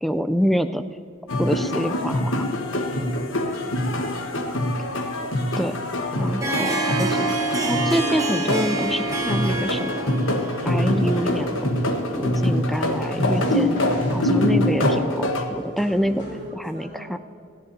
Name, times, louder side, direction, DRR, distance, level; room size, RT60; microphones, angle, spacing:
voice 1, 0.0-0.8 1.4-2.5 5.6-5.8 6.2-7.3 7.7-10.2 10.6-11.7 12.2-16.1 16.6-17.2, equal, ahead, 11 dB, 0.3 m, -26 dB
sound 1, 1.3-15.4, left 1 dB, 85° left, 1.3 m, -24 dB
voice 2, 3.6-4.0 4.4-4.6 16.0-17.2, equal, 45° right, -4 dB, 2.8 m, -42 dB
Harp, 6.1-13.9, right 3 dB, 15° right, 1.2 m, -28 dB
sound 2, 8.7-16.5, equal, 60° left, 3.1 m, -42 dB
28.5 x 10.5 x 2.8 m, 2.6 s
head